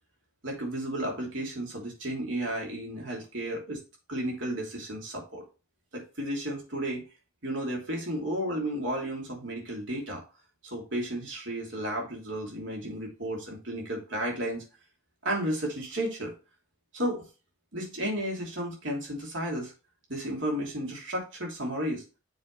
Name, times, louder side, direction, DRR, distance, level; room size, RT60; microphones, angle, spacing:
voice 1, 0.4-3.8 4.1-5.4 5.9-7.0 7.4-10.2 10.6-14.6 15.2-16.3 16.9-17.2 17.7-19.7 20.1-22.0, right 1 dB, 60° right, -1 dB, 3.0 m, -33 dB
7.1 x 5.0 x 4.0 m, 0.31 s
head